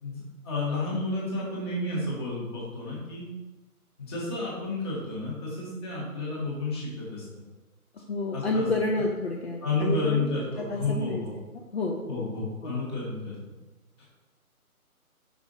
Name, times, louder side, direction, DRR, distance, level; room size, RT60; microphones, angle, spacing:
voice 1, 0.0-3.3 4.0-7.3 8.3-8.7 9.6-11.3 12.1-13.4, left 2 dB, 15° left, -5 dB, 1.2 m, -31 dB
voice 2, 8.1-10.3 10.6-11.2 11.7-12.3 12.6-12.7, left 2 dB, 45° left, -1 dB, 0.7 m, -29 dB
5.1 x 4.9 x 3.7 m, 1.1 s
figure-of-eight pair, 160°, 44 cm